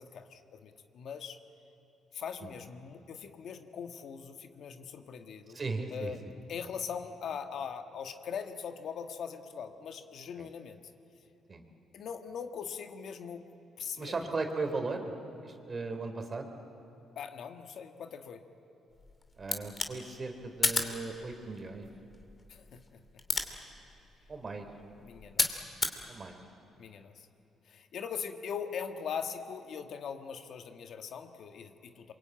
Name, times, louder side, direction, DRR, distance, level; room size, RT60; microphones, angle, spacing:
voice 1, 0.0-1.4 2.1-5.6 5.9-10.8 11.9-13.4 13.8-14.3 17.1-18.4 22.5-22.8 25.0-25.6 26.8-27.3 27.6-32.1, left 7 dB, 65° left, 7 dB, 1.6 m, -41 dB
voice 2, 5.5-6.1 10.4-10.5 11.5-11.6 14.0-15.1 15.4-16.5 19.4-21.9 24.3-24.7 26.1-26.4, right 3 dB, 35° right, 6 dB, 3.2 m, -37 dB
sound 1, 18.9-26.0, left 3 dB, 30° left, 2.6 m, -36 dB
27.0 x 23.5 x 9.1 m, 2.8 s
cardioid pair, 90°, 0 cm